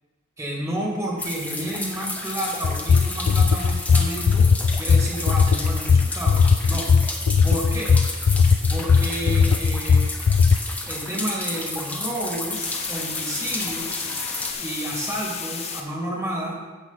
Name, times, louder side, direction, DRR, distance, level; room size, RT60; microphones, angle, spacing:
voice 1, 0.4-4.5 4.8-6.9 7.4-8.0 8.7-10.1 10.8-14.1 14.6-16.6, right 1 dB, 15° right, -3 dB, 2.2 m, -31 dB
sound 1, 1.2-14.5, left 2 dB, 10° left, 1.1 m, -32 dB
sound 2, 1.9-7.4 7.7-15.8, left 6 dB, 30° left, 1.0 m, -36 dB
sound 3, 2.6-10.6, left 5 dB, 75° left, 0.4 m, -18 dB
15.0 x 6.7 x 4.1 m, 1.3 s
head